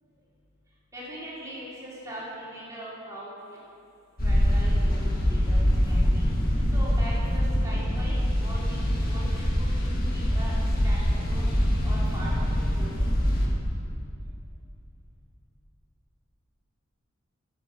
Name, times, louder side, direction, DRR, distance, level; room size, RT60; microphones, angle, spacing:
voice 1, 0.9-3.3 4.2-5.6 5.9-6.3 6.7-8.8 9.1-9.5 9.8-10.5 10.8-11.5 11.8-12.3 12.8-12.9, right 1 dB, 15° right, -8 dB, 3.7 m, -41 dB
sound 1, 4.2-13.5, equal, 45° left, 1.9 m, -24 dB
13.0 x 8.2 x 6.7 m, 2.6 s
head